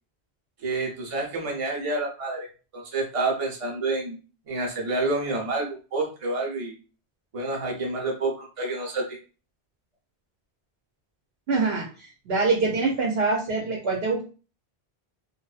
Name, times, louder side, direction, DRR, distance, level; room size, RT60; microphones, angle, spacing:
voice 1, 0.6-2.5 2.7-4.2 4.4-6.7 7.3-9.0, right 2 dB, 40° right, 0 dB, 0.6 m, -28 dB
voice 2, 11.5-14.3, right 3 dB, 70° right, -1 dB, 0.8 m, -25 dB
2.5 x 2.2 x 2.3 m, 0.36 s
omnidirectional pair, 1.1 m